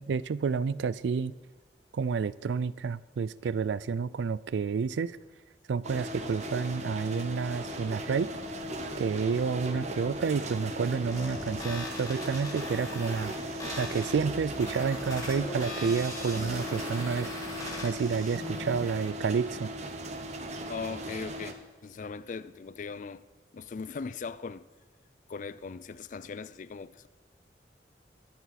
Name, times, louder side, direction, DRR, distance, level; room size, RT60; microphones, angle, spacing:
voice 1, 0.0-1.3 1.9-5.2 5.7-8.3 9.0-13.3 13.8-17.3 17.8-19.7, right 5 dB, 80° right, 0.4 m, -30 dB
sound 1, 5.8-21.5, equal, 40° right, 1.0 m, -38 dB
sound 2, 11.1-19.1, left 1 dB, 20° left, 1.7 m, -40 dB
voice 2, 20.7-23.2 23.5-24.7 25.3-27.1, left 5 dB, 45° left, 0.3 m, -39 dB
20.0 x 7.0 x 4.2 m
head